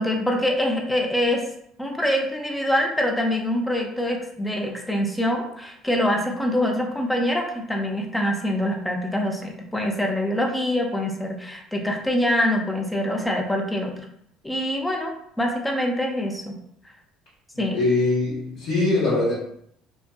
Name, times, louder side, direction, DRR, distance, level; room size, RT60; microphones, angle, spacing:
voice 1, 0.0-1.5 1.8-13.9 14.4-16.6 17.6-17.8, left 1 dB, 10° left, 2 dB, 0.5 m, -24 dB
voice 2, 17.7-19.3, left 2 dB, 75° left, -8 dB, 0.9 m, -22 dB
2.5 x 2.5 x 2.2 m, 0.71 s
supercardioid pair, 80°, 0 cm